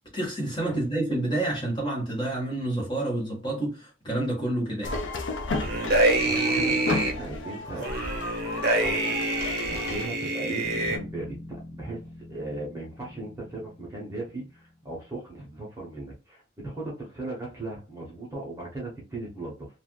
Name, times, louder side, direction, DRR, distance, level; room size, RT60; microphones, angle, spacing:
voice 1, 0.1-5.0, right 1 dB, 25° left, 1.4 m, -29 dB
sound 1, 4.8-10.1, left 2 dB, 65° left, 0.6 m, -33 dB
sound 2, 5.6-7.1 7.8-11.0, right 2 dB, 50° right, 0.7 m, -26 dB
voice 2, 6.2-7.9 8.8-9.3 9.6-11.4 11.7-12.0 12.3-19.7, right 2 dB, 15° right, 0.9 m, -37 dB
Bass guitar, 10.6-15.0, left 1 dB, 5° left, 0.5 m, -44 dB
3.3 x 2.5 x 2.2 m
head